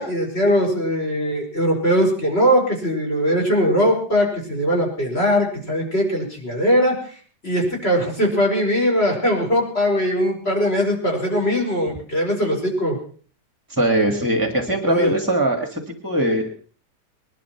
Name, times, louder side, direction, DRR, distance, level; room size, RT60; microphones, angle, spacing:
voice 1, 0.0-7.1 7.4-13.0 14.9-15.1, equal, 35° left, 1 dB, 5.6 m, -20 dB
voice 2, 13.7-16.6, right 1 dB, 10° right, 5 dB, 1.9 m, -21 dB
20.0 x 12.0 x 5.9 m, 0.43 s
omnidirectional pair, 1.8 m